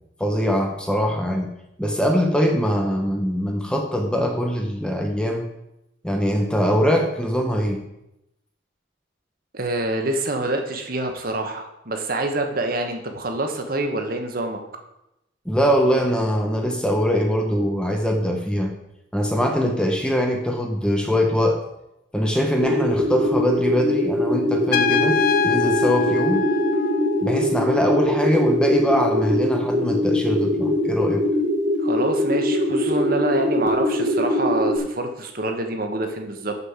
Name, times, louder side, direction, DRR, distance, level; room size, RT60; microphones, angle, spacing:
voice 1, 0.2-1.5 1.8-5.5 6.0-7.8 15.4-18.7 19.1-21.6 22.1-26.5 27.2-31.2, equal, 5° left, 2 dB, 0.9 m, -22 dB
voice 2, 9.5-14.6 31.8-36.6, right 2 dB, 45° right, 4 dB, 1.2 m, -26 dB
sound 1, 22.6-34.8, left 1 dB, 80° right, 2.0 m, -22 dB
Trumpet, 24.7-27.4, left 8 dB, 45° left, 0.4 m, -24 dB
6.8 x 6.3 x 7.3 m, 0.87 s
head